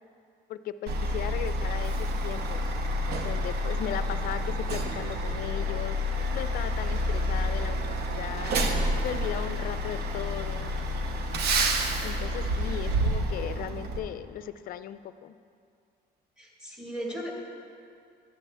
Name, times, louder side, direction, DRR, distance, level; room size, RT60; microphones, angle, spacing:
voice 1, 0.5-2.7 3.2-6.0 6.3-8.6 9.0-10.7 12.0-15.4, left 10 dB, 60° left, 13 dB, 0.4 m, -37 dB
Truck, 0.9-14.0, equal, 70° right, 0.8 m, -29 dB
voice 2, 16.4-17.3, right 1 dB, 5° right, -2 dB, 1.7 m, -36 dB
12.0 x 7.6 x 3.3 m, 2.4 s
cardioid pair, 110°, 17 cm